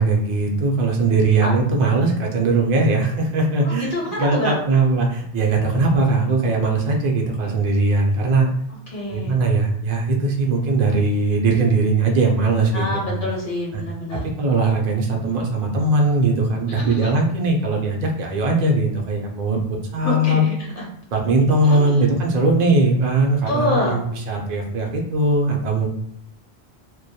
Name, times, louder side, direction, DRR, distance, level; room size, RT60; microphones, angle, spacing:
voice 1, 0.0-8.5 9.1-13.2 14.1-20.4 21.1-25.9, right 3 dB, 55° right, 2 dB, 0.5 m, -20 dB
voice 2, 3.6-4.5 8.9-9.3 12.7-14.2 16.7-17.1 20.0-20.8 21.6-22.1 23.5-24.0, left 1 dB, 60° left, -3 dB, 0.9 m, -26 dB
2.2 x 2.1 x 2.7 m, 0.72 s
omnidirectional pair, 1.1 m